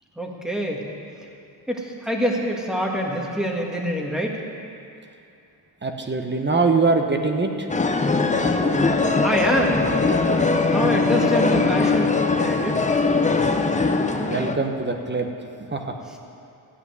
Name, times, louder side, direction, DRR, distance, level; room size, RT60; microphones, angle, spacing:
voice 1, 0.2-0.8 1.7-4.4 9.2-9.9 10.6-12.8 16.1-16.2, equal, ahead, -1 dB, 1.7 m, -25 dB
voice 2, 5.8-7.7 13.8-13.9 14.2-15.3 15.7-15.9, right 3 dB, 25° right, 4 dB, 1.0 m, -23 dB
sound 1, 7.7-14.6, left 3 dB, 15° left, 0.6 m, -21 dB
14.0 x 5.8 x 9.5 m, 2.6 s
cardioid pair, 100°, 46 cm